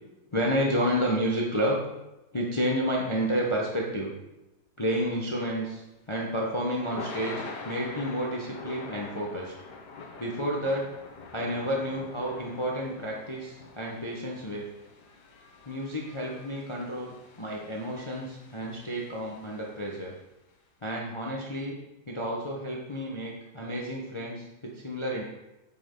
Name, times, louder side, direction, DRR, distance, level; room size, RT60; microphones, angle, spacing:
voice 1, 0.3-1.8 2.3-4.1 4.8-9.5 10.2-10.9 11.3-14.7 15.7-20.1 20.8-21.8 22.1-25.2, equal, 20° left, -2 dB, 0.9 m, -30 dB
Thunder / Rain, 5.8-20.1, left 3 dB, 70° left, 1.7 m, -45 dB
9.1 x 6.1 x 3.8 m, 0.96 s
omnidirectional pair, 1.9 m